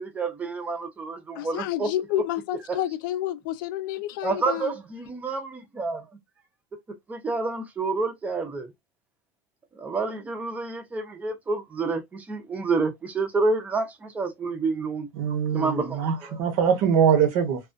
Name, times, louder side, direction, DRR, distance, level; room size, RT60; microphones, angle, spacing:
voice 1, 0.0-1.9 2.2-2.3 2.7-2.8 4.2-6.1 7.1-8.7 9.7-15.1 15.5-16.4, right 3 dB, 15° right, 0.5 m, -29 dB
voice 2, 1.4-4.7, left 13 dB, 80° left, 0.4 m, -29 dB
voice 3, 15.2-17.6, right 7 dB, 55° right, 0.8 m, -22 dB
2.3 x 2.3 x 2.4 m
supercardioid pair, 165°, 11 cm